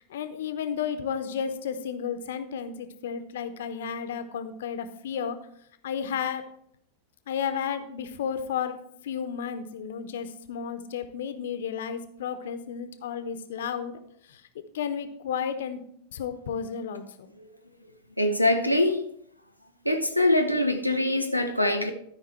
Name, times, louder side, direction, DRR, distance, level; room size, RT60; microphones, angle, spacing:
voice 1, 0.0-5.4 5.8-6.4 7.3-14.0 14.3-14.4 14.7-15.8 16.1-17.3, left 7 dB, 60° left, 0.9 m, -32 dB
voice 2, 18.2-19.1 19.8-21.9, left 1 dB, 90° right, 1.0 m, -24 dB
13.0 x 5.2 x 4.5 m
figure-of-eight pair, 90°, 0 cm